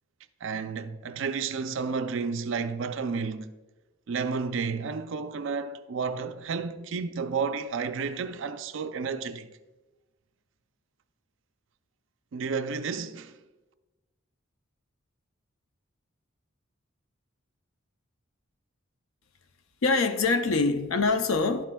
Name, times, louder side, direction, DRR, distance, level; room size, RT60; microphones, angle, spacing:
voice 1, 0.4-3.6 4.1-9.5 12.3-13.3, right 5 dB, 60° right, 0.4 m, -31 dB
voice 2, 19.8-21.6, left 3 dB, 75° left, 0.6 m, -24 dB
11.5 x 7.4 x 2.3 m
head